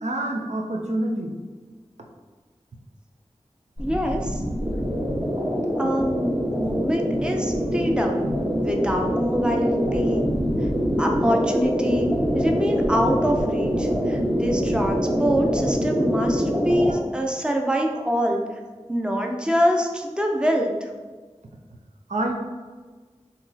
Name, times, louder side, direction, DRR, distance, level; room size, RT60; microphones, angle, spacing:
voice 1, 0.0-1.3 22.1-22.3, right 1 dB, 85° right, 1 dB, 0.6 m, -26 dB
voice 2, 3.8-4.4 5.8-8.3 8.6-10.2 11.0-12.1 12.3-18.4 18.9-20.9, equal, 10° right, 1 dB, 0.5 m, -25 dB
sound 1, 3.8-16.9, equal, 35° right, 1.3 m, -24 dB
5.8 x 3.0 x 2.7 m, 1.4 s
wide cardioid pair, 60°, 11 cm